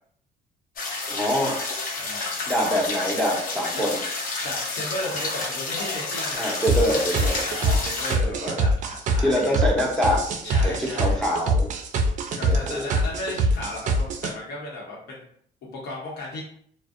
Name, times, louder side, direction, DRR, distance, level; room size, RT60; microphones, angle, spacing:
sound 1, 0.8-8.1, left 3 dB, 55° left, 0.6 m, -30 dB
voice 1, 1.1-1.6 2.5-4.0 6.4-7.8 8.2-8.6 9.2-10.2 10.6-11.7 12.4-12.9, equal, 5° left, -3 dB, 0.6 m, -25 dB
voice 2, 2.0-2.4 3.8-3.9 4.4-6.5 6.9-7.1 7.4-9.7 10.4-11.2 12.4-15.2 15.6-16.4, left 2 dB, 80° left, -3 dB, 0.9 m, -35 dB
sound 2, 6.7-14.3, right 2 dB, 45° right, 0.4 m, -24 dB
2.5 x 2.0 x 2.4 m, 0.63 s
cardioid pair, 110°, 17 cm